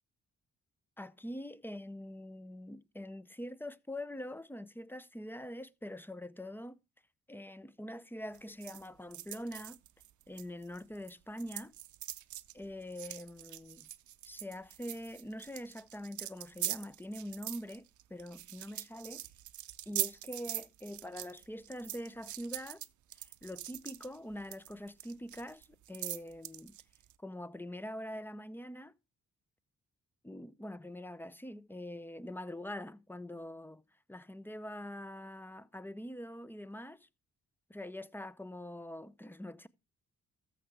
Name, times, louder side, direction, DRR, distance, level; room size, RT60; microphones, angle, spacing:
voice 1, 1.0-6.8 7.3-9.8 10.3-11.7 12.5-13.9 14.2-19.2 19.9-22.8 23.2-26.8 27.2-28.9 30.2-33.8 34.1-37.1 37.7-39.7, left 1 dB, 5° left, 0.5 m, -44 dB
sound 1, 8.3-11.1 11.4-27.1, right 13 dB, 65° right, 0.6 m, -43 dB
13.5 x 6.5 x 3.3 m
cardioid pair, 75°, 33 cm